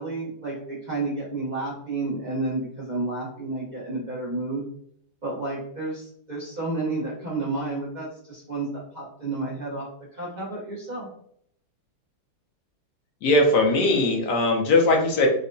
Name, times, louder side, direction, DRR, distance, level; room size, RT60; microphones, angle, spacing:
voice 1, 0.0-4.6 5.2-11.1, right 2 dB, 80° right, -7 dB, 0.4 m, -31 dB
voice 2, 13.2-15.3, left 2 dB, 70° left, 2 dB, 1.2 m, -20 dB
4.0 x 2.2 x 2.6 m, 0.66 s
omnidirectional pair, 2.1 m